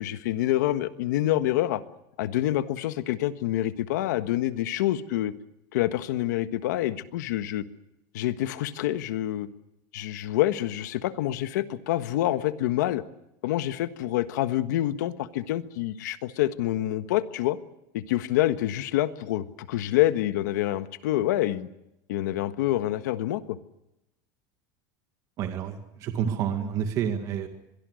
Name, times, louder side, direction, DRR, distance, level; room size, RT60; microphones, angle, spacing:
voice 1, 0.0-1.8 2.2-5.3 5.7-7.6 8.1-9.5 9.9-13.0 13.4-17.6 17.9-21.7 22.1-23.6, left 14 dB, 85° left, 10 dB, 1.5 m, -27 dB
voice 2, 25.4-27.5, right 8 dB, 35° right, 6 dB, 2.0 m, -29 dB
25.5 x 22.5 x 6.6 m, 0.87 s
supercardioid pair, 170°, 10 cm